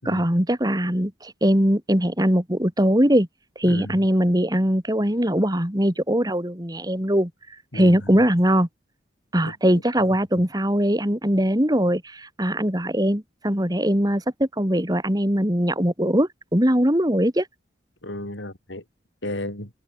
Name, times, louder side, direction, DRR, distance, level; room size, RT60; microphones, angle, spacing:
voice 1, 0.0-3.3 3.5-7.3 7.7-8.7 9.3-17.5, equal, 20° right, 3.4 m, -21 dB
voice 2, 3.6-4.0 7.7-8.1 9.4-9.8 18.0-18.8 19.2-19.7, left 1 dB, 85° left, 6.4 m, -34 dB
head